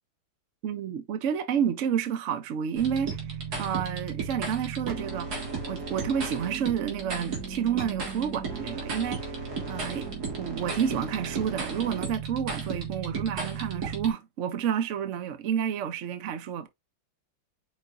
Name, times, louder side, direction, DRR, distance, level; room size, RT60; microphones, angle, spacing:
voice 1, 0.6-5.4 5.7-10.1 10.4-16.7, right 8 dB, 70° right, 0.7 m, -30 dB
sound 1, 2.8-14.1, right 5 dB, 55° right, 2.0 m, -34 dB
5.2 x 4.2 x 2.4 m
omnidirectional pair, 2.2 m